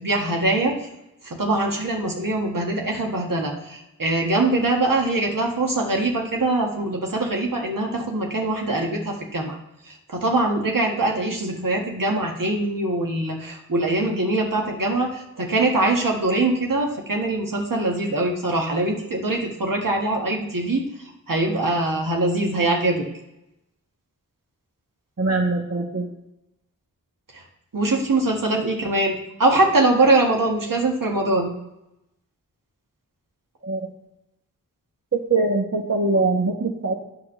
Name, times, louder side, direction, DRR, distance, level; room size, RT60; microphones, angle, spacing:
voice 1, 0.0-0.8 1.2-9.6 9.9-20.9 21.3-23.0 27.7-31.5, right 2 dB, 75° right, 0 dB, 1.8 m, -23 dB
voice 2, 25.2-26.0 33.6-33.9 35.3-36.9, right 3 dB, 50° right, 2 dB, 1.3 m, -22 dB
8.8 x 3.8 x 6.7 m, 0.88 s
cardioid pair, 40°, 34 cm